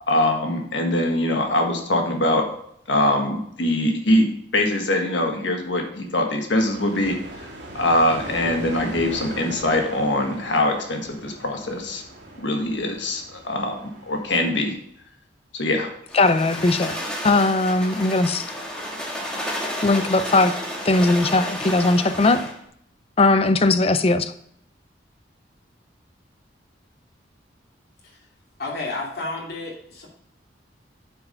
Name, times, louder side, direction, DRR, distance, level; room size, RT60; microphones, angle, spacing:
voice 1, 0.1-2.4 2.9-4.3 4.5-7.2 7.7-12.0 12.4-14.7 15.5-15.9, left 1 dB, 90° left, 3 dB, 1.6 m, -22 dB
sound 1, 6.6-14.7, right 1 dB, 80° right, 2.1 m, -39 dB
voice 2, 16.1-17.0 17.2-18.5 19.8-20.5 20.9-22.5 23.2-24.3, left 2 dB, 35° left, 11 dB, 0.5 m, -19 dB
sound 2, 16.1-22.6, equal, 5° left, 1.4 m, -31 dB
voice 3, 28.6-30.1, left 2 dB, 60° left, -3 dB, 2.7 m, -31 dB
9.0 x 4.8 x 5.1 m, 0.69 s
head